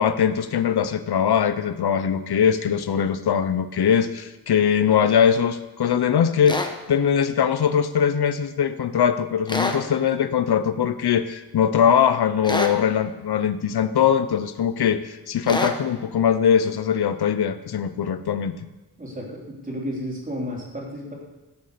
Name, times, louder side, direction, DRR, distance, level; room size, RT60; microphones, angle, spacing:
voice 1, 0.0-18.5, left 8 dB, 80° left, 11 dB, 0.8 m, -21 dB
sound 1, 6.5-6.7 9.5-9.8 12.4-12.8 15.5-15.8, left 2 dB, 10° left, 1.0 m, -25 dB
voice 2, 19.0-21.1, equal, 20° right, -3 dB, 3.5 m, -32 dB
16.5 x 6.8 x 6.7 m, 1.1 s
wide cardioid pair, 160°, 38 cm